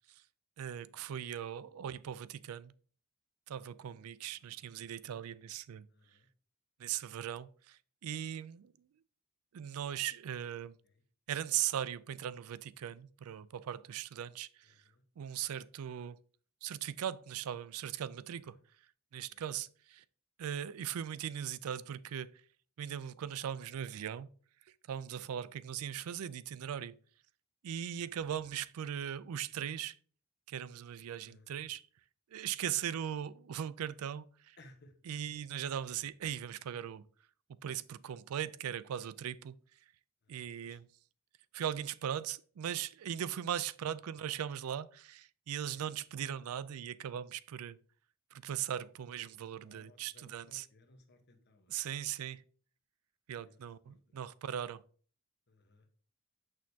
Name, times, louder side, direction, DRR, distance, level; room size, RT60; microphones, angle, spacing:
voice 1, 0.6-2.7 3.5-5.9 6.8-8.7 9.5-10.7 11.3-14.8 15.2-16.2 16.6-18.6 19.1-20.0 20.4-22.4 22.8-24.3 24.9-27.0 27.6-30.0 30.5-31.8 32.3-34.6 35.1-37.1 37.6-39.6 40.3-40.8 41.5-47.8 48.3-50.7 51.7-52.4 53.3-54.8, right 9 dB, 85° right, 0.4 m, -39 dB
voice 2, 4.3-4.8 5.1-5.3 5.9-6.3 10.8-11.0 14.6-15.0 18.3-18.6 19.1-19.5 25.2-25.5 27.9-28.3 31.2-31.5 34.6-35.0 40.2-40.8 45.6-45.9 48.7-48.9 49.6-51.8 53.4-54.0 55.5-55.9, left 2 dB, 50° left, 1.1 m, -63 dB
6.4 x 6.2 x 2.8 m
head